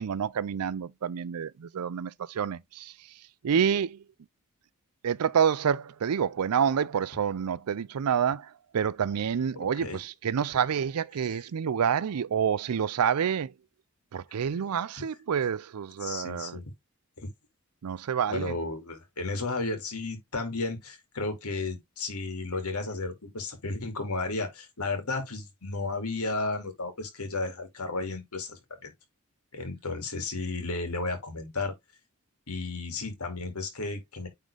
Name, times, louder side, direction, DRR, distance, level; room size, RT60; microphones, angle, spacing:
voice 1, 0.0-2.9 3.4-4.0 5.0-13.5 14.1-16.6 17.8-18.5, right 7 dB, 85° right, 0.4 m, -28 dB
voice 2, 9.6-10.0 11.3-11.4 16.0-16.6 17.2-17.3 18.3-28.9 29.5-31.7 32.5-34.3, left 3 dB, 85° left, 2.2 m, -33 dB
9.1 x 3.7 x 3.3 m
head